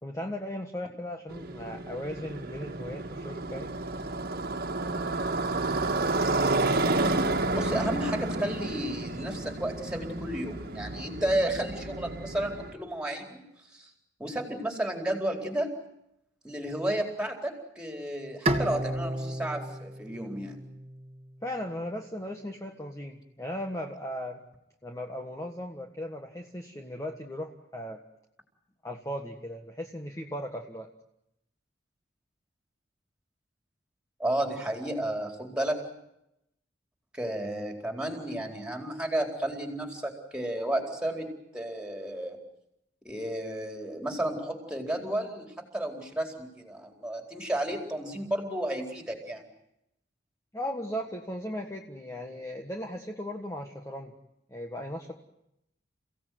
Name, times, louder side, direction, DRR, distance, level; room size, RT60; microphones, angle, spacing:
voice 1, 0.0-3.7 21.4-24.4 24.8-28.0 28.8-30.9 50.5-54.1 54.5-55.1, equal, 15° left, 3 dB, 1.6 m, -37 dB
Motorcycle, 1.3-12.7, right 2 dB, 55° right, 1.9 m, -30 dB
voice 2, 7.5-13.4 13.7-13.9 14.2-15.7 16.4-20.6 34.2-35.8 37.1-41.3 41.5-42.4 43.0-49.4, right 1 dB, 5° right, 3 dB, 4.2 m, -32 dB
Bowed string instrument, 18.5-21.7, right 1 dB, 35° right, 1.8 m, -33 dB
29.5 x 17.0 x 9.4 m, 0.83 s
head